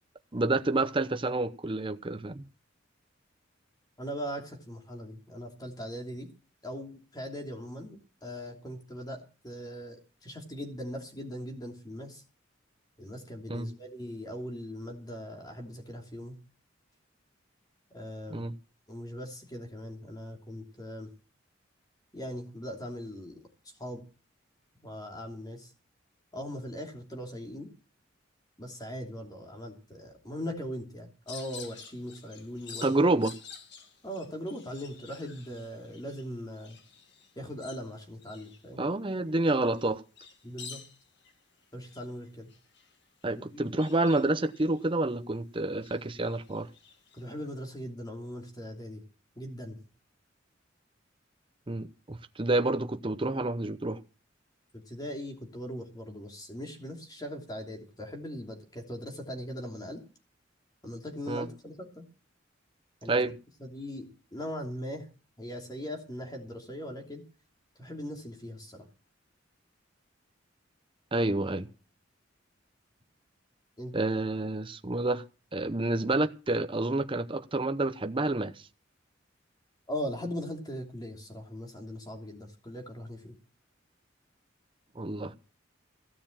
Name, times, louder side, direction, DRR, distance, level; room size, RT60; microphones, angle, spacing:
voice 1, 0.3-2.4 13.5-13.7 18.3-18.6 32.8-33.3 38.8-40.0 43.2-46.7 51.7-54.0 61.3-61.5 63.1-63.3 71.1-71.7 73.9-75.2 75.5-78.7 84.9-85.3, right 2 dB, 25° right, 0.8 m, -28 dB
voice 2, 4.0-6.3 6.6-12.2 13.0-16.4 17.9-18.5 18.9-21.1 22.1-23.4 23.8-24.0 24.8-25.7 26.3-27.7 28.6-32.9 34.0-36.8 37.4-38.8 40.4-40.8 41.7-42.5 43.3-43.8 47.1-49.0 49.3-49.8 54.7-60.0 60.8-62.0 63.0-63.2 63.6-65.1 65.4-67.2 67.8-68.9 73.8-73.9 79.9-83.3, equal, 20° left, 3.0 m, -40 dB
sound 1, 31.3-45.4 45.7-47.6, left 6 dB, 60° left, 1.8 m, -51 dB
16.0 x 6.9 x 7.4 m
head